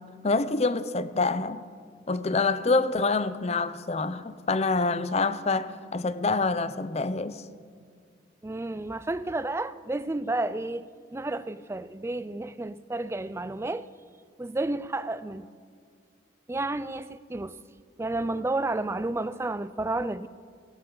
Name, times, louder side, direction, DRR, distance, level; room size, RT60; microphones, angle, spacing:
voice 1, 0.2-1.6 2.1-7.4, left 3 dB, 35° left, 0.5 m, -26 dB
voice 2, 8.4-13.9 14.4-15.5 16.5-17.6 18.0-20.3, right 2 dB, 15° right, 0.4 m, -31 dB
17.5 x 17.0 x 3.9 m
head